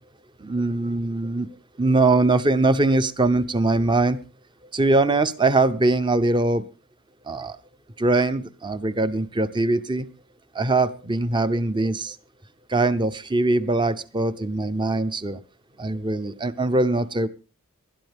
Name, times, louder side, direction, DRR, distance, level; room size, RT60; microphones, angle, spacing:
voice 1, 0.4-1.5 1.8-4.2 4.7-6.7 7.3-7.6 8.0-10.1 10.5-12.2 12.7-15.4 15.8-17.3, right 2 dB, 20° right, 12 dB, 0.7 m, -22 dB
19.0 x 12.5 x 3.5 m, 0.33 s
head